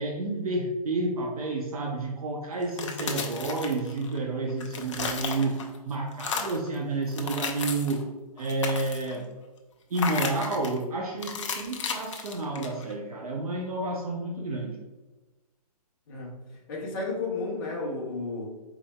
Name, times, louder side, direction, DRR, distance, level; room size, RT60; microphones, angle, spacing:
voice 1, 0.0-8.0 8.4-9.3 9.9-14.8, right 2 dB, 65° right, 1 dB, 0.8 m, -30 dB
sound 1, 2.6-4.2 4.5-5.8 6.1-6.7 7.1-8.0 8.4-9.2 9.9-10.8 11.2-12.9, left 5 dB, 50° left, 0.6 m, -34 dB
voice 2, 16.1-16.4 16.7-18.4, left 3 dB, 30° left, -5 dB, 0.9 m, -32 dB
4.7 x 4.0 x 2.2 m, 1.2 s
hypercardioid pair, 165°, 20 cm